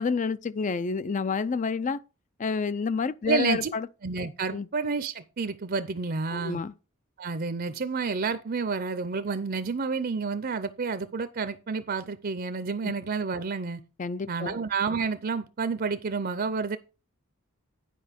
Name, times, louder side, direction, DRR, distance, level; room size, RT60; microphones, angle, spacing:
voice 1, 0.0-2.0 2.4-3.9 4.5-4.7 6.3-6.7 12.8-12.9 14.0-14.6, left 5 dB, 35° left, 0.4 m, -29 dB
voice 2, 3.3-3.7 4.0-6.6 7.2-13.8 14.3-16.8, right 4 dB, 45° right, 0.6 m, -30 dB
10.0 x 5.1 x 5.1 m
head